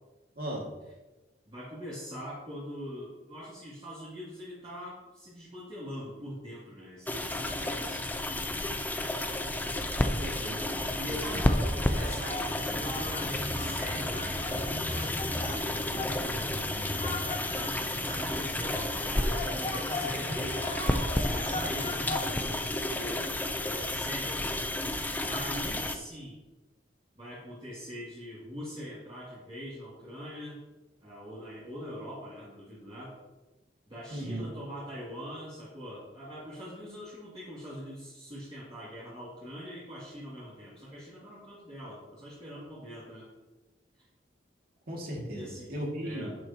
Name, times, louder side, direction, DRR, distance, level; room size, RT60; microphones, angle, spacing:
voice 1, 0.4-0.7 10.2-10.7 11.1-11.4 34.1-34.5 44.9-46.4, right 1 dB, 55° right, -1 dB, 2.3 m, -36 dB
voice 2, 1.5-8.7 10.8-16.4 17.4-24.4 25.3-26.4 27.1-30.6 31.0-33.2 33.9-43.3 45.3-45.7 46.0-46.3, equal, 30° right, -10 dB, 2.6 m, -43 dB
sound 1, 7.1-26.0, left 1 dB, 10° left, 0.6 m, -32 dB
sound 2, 10.6-22.3, left 1 dB, 35° left, 1.4 m, -38 dB
11.0 x 8.3 x 2.9 m, 1.1 s
head